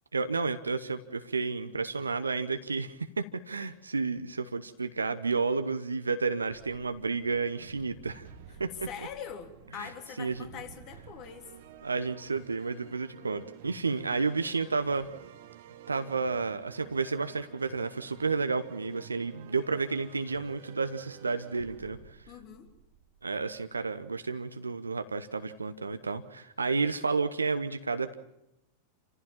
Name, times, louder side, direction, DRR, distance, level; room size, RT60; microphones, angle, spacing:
voice 1, 0.1-8.3 8.6-8.7 9.7-9.9 10.2-10.5 11.8-15.1 15.9-22.0 23.2-28.2, right 4 dB, 75° right, 9 dB, 1.0 m, -31 dB
sound 1, 6.5-24.1, right 10 dB, 55° right, 1.5 m, -52 dB
voice 2, 8.8-11.5 22.3-22.7, left 8 dB, 40° left, 4 dB, 3.5 m, -43 dB
28.5 x 15.0 x 7.3 m, 0.87 s
figure-of-eight pair, 90°, 0 cm